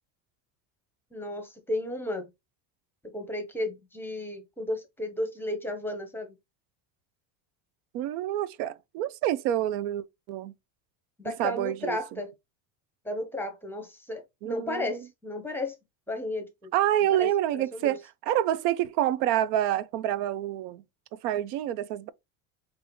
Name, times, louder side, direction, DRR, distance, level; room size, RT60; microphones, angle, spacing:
voice 1, 1.1-2.3 3.1-6.3 11.2-12.3 13.0-15.7 16.1-16.7 17.2-17.3 17.7-17.9, left 1 dB, 5° left, 0.7 m, -33 dB
voice 2, 7.9-10.5 11.4-12.2 14.4-15.0 16.7-20.8 21.1-22.1, right 12 dB, 85° right, 0.5 m, -28 dB
4.7 x 2.6 x 2.9 m
cardioid pair, 125°, 45 cm